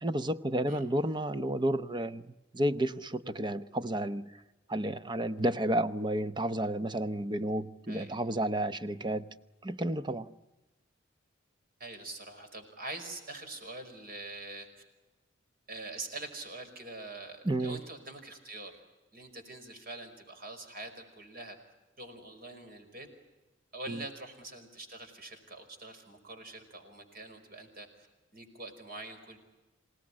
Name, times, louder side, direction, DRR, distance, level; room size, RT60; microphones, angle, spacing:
voice 1, 0.0-4.3 4.7-9.3 9.6-10.3 17.4-17.8 23.9-24.0, right 1 dB, 25° right, 0.9 m, -31 dB
voice 2, 7.9-8.2 11.8-14.7 15.7-18.7 19.1-21.6 22.0-23.1 23.7-27.9 28.3-29.4, right 2 dB, 50° right, 5.2 m, -44 dB
27.0 x 18.5 x 9.9 m
head